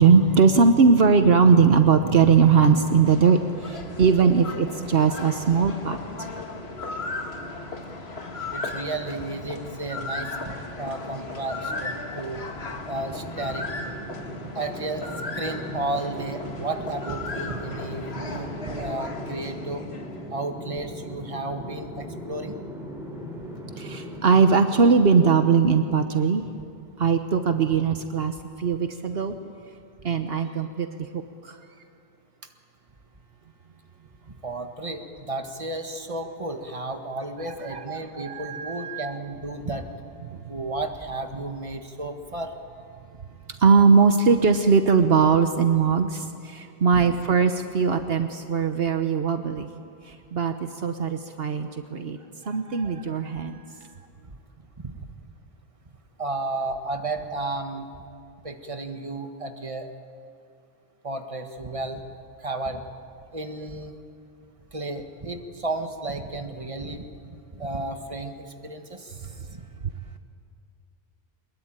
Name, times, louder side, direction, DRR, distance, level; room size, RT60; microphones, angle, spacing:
voice 1, 0.0-6.0 23.8-26.4 27.0-29.3 30.0-30.9 31.1-31.6 37.6-39.1 43.6-49.7 50.3-52.2 52.4-53.6, right 5 dB, 70° right, 7 dB, 1.2 m, -20 dB
sound 1, 2.0-20.4, left 2 dB, 80° left, 2.1 m, -36 dB
voice 2, 8.5-12.5 12.7-13.7 14.5-15.0 15.3-19.8 20.3-22.6 34.4-39.9 40.5-42.5 46.9-47.2 54.8-55.0 56.2-57.9 58.4-59.9 61.0-62.0 62.4-62.8 63.3-64.0 64.7-67.1 67.5-69.6, right 2 dB, 30° right, 5 dB, 1.7 m, -33 dB
sound 2, 12.9-24.7, equal, 5° right, 3.8 m, -38 dB
23.5 x 21.5 x 8.9 m, 2.4 s
omnidirectional pair, 1.1 m